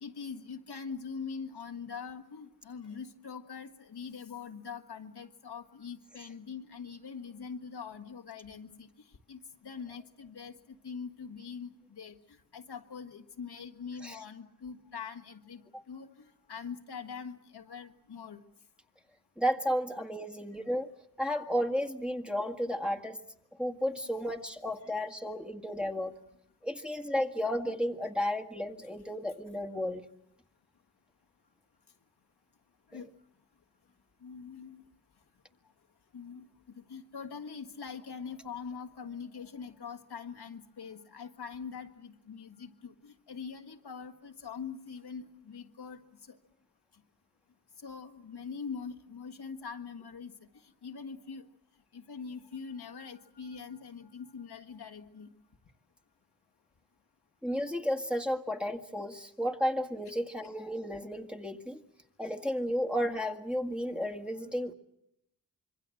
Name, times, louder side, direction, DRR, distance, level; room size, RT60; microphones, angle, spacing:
voice 1, 0.0-8.9 9.3-12.2 12.5-18.4 24.8-24.9 32.9-33.1 34.2-34.8 36.1-46.0 46.3-46.4 47.8-50.3 50.8-51.5 51.9-55.3 64.0-64.1, left 6 dB, 80° left, 5 dB, 1.8 m, -43 dB
voice 2, 19.4-20.9 21.2-23.2 23.6-26.1 26.6-30.0 57.4-61.8 62.2-64.7, equal, 5° right, 1 dB, 1.8 m, -33 dB
26.0 x 23.0 x 7.7 m, 0.78 s
cardioid pair, 60°, 39 cm